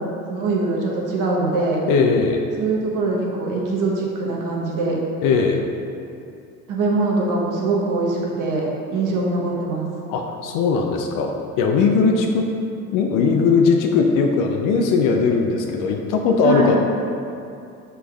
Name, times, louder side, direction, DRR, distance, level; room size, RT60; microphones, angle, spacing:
voice 1, 0.0-1.9 2.6-5.0 6.7-9.9 16.4-16.8, right 3 dB, 45° right, -3 dB, 1.0 m, -23 dB
voice 2, 1.9-2.5 5.2-5.6 10.1-12.5 12.9-16.8, left 5 dB, 45° left, 2 dB, 0.5 m, -19 dB
5.9 x 3.4 x 2.3 m, 2.6 s
hypercardioid pair, 65°, 46 cm